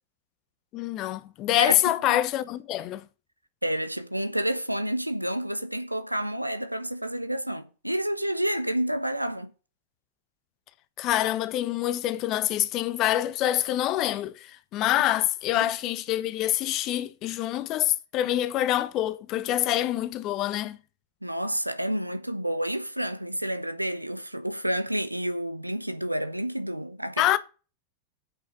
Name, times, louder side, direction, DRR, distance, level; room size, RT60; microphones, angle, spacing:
voice 1, 0.7-3.0 11.0-20.8 27.2-27.4, left 13 dB, 35° left, 0.9 m, -26 dB
voice 2, 3.6-9.5 15.5-15.7 21.2-27.4, right 1 dB, 90° right, 1.1 m, -29 dB
8.4 x 6.2 x 7.4 m
figure-of-eight pair, 90°, 0 cm